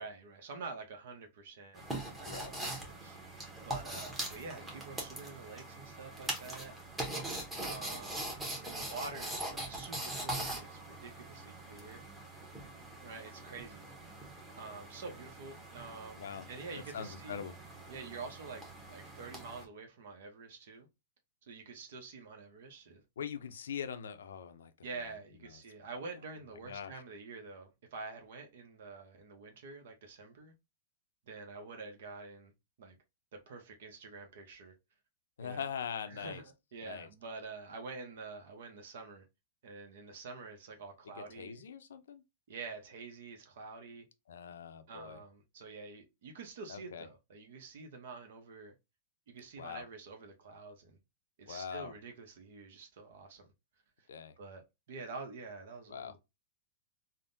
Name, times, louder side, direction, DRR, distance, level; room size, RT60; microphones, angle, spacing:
voice 1, 0.0-1.9 2.2-6.8 7.6-8.2 8.6-12.0 13.0-13.9 14.6-17.5 17.9-20.9 21.4-23.0 24.8-30.5 31.3-32.5 32.8-33.0 33.3-34.7 35.4-35.7 36.1-39.3 39.6-41.6 42.5-44.1 44.9-48.7 49.3-51.0 51.4-53.5 54.0-54.1 54.4-56.2, right 4 dB, 70° right, 0.7 m, -47 dB
sound 1, 1.7-19.6, right 1 dB, 10° right, 0.9 m, -42 dB
voice 2, 16.2-16.5 16.9-17.6 23.2-25.1 26.6-27.0 35.4-36.4 36.8-37.1 41.1-42.2 44.3-45.2 46.7-47.1 49.6-49.8 51.5-51.9 54.1-54.3 55.9-56.1, left 7 dB, 85° left, 0.4 m, -42 dB
3.4 x 2.1 x 2.6 m
hypercardioid pair, 130°, 0 cm